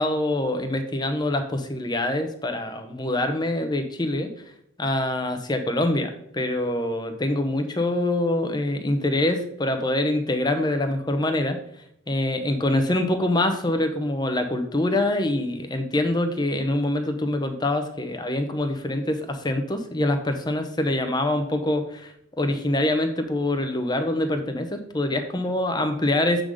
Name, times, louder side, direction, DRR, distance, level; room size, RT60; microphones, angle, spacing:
voice 1, 0.0-4.5 4.8-26.4, left 1 dB, 20° left, 6 dB, 0.7 m, -25 dB
7.8 x 3.8 x 4.9 m, 0.74 s
head